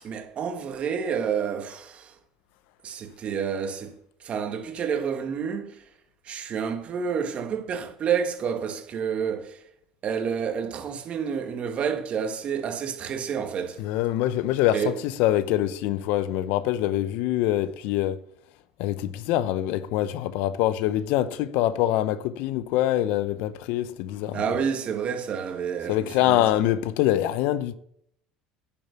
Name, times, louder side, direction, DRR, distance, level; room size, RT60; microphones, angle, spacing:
voice 1, 0.0-2.1 2.8-3.9 4.2-5.9 6.2-9.6 10.0-13.8 14.7-15.0 24.3-26.6, right 7 dB, 45° right, 1.8 m, -29 dB
voice 2, 13.8-18.2 18.8-24.4 25.9-27.8, left 13 dB, 70° left, 0.7 m, -24 dB
10.5 x 7.2 x 6.9 m
supercardioid pair, 80°, 3 cm